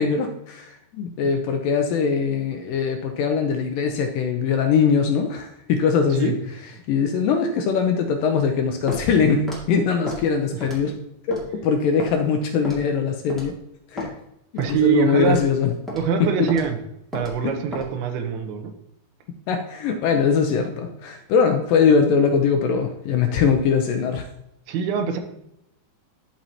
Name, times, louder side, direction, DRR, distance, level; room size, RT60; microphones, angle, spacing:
voice 1, 0.0-6.4 6.6-11.0 11.3-13.5 13.9-14.1 14.7-15.7 16.2-16.3 17.4-17.5 19.5-24.3, left 6 dB, 80° left, 5 dB, 2.1 m, -21 dB
Walk footsteps, 8.9-9.1 9.5-9.6 10.1-10.2 10.6-10.9 11.3-11.4 12.0-12.1 12.6-12.9 13.3-13.5 14.0-14.1 14.6-14.8 15.2-15.5 15.9-16.0 16.5-16.7 17.1-17.3 17.7-17.9, left 1 dB, ahead, 0.7 m, -32 dB
voice 2, 14.6-15.4 15.9-16.8 17.1-18.7 24.7-25.2, right 7 dB, 90° right, 6 dB, 2.7 m, -23 dB
13.0 x 4.4 x 2.9 m, 0.81 s
omnidirectional pair, 4.4 m